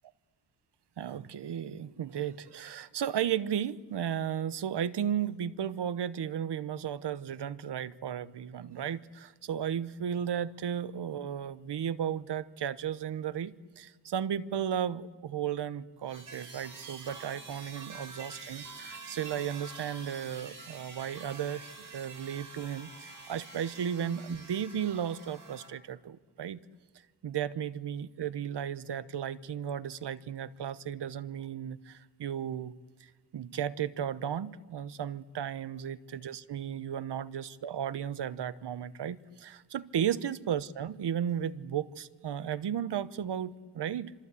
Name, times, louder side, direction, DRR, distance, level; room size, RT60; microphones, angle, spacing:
voice 1, 1.0-26.6 27.2-32.7 33.3-44.1, right 9 dB, 80° right, 15 dB, 0.9 m, -34 dB
sound 1, 16.1-25.7, right 4 dB, 50° right, 4.6 m, -47 dB
27.0 x 26.5 x 8.3 m, 1.4 s
wide cardioid pair, 175°, 41 cm